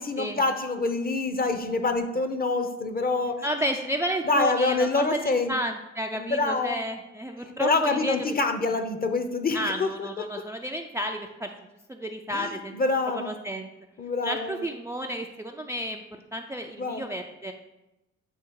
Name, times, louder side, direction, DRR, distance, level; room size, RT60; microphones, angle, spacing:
voice 1, 0.0-3.4 4.2-5.5 6.1-6.8 7.4-10.1 12.3-13.3 14.0-14.6 16.8-17.1, left 3 dB, 30° left, 8 dB, 0.7 m, -26 dB
voice 2, 3.4-8.3 9.5-11.5 11.9-12.8 13.1-13.7 14.2-16.0 16.3-17.5, equal, 10° right, 3 dB, 0.4 m, -31 dB
8.2 x 2.8 x 4.6 m, 0.96 s
cardioid pair, 90°, 30 cm